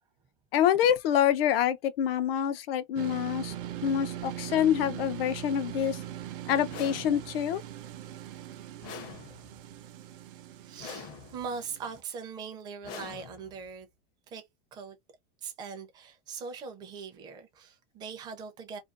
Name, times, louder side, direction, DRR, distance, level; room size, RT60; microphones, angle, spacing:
voice 1, 0.5-3.5 3.8-6.0 6.5-7.6, left 10 dB, 75° left, 0.6 m, -26 dB
sound 1, 3.0-12.0, right 11 dB, 65° right, 0.5 m, -41 dB
sound 2, 6.7-7.6 8.8-9.7 10.8-11.6 12.8-13.7, left 6 dB, 40° left, 0.6 m, -45 dB
voice 2, 10.6-13.9 14.3-14.4 14.7-15.0 15.4-18.8, right 5 dB, 15° right, 0.4 m, -41 dB
2.5 x 2.2 x 2.4 m
supercardioid pair, 160°, 29 cm